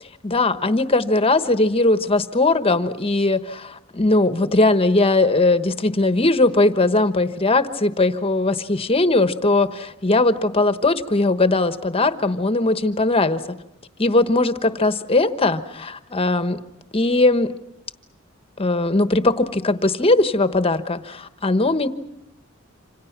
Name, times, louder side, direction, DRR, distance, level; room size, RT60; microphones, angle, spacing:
voice 1, 0.2-13.6 14.0-16.6 16.9-17.5 18.6-21.9, left 2 dB, 30° left, 11 dB, 1.2 m, -19 dB
28.0 x 26.5 x 6.0 m, 0.84 s
head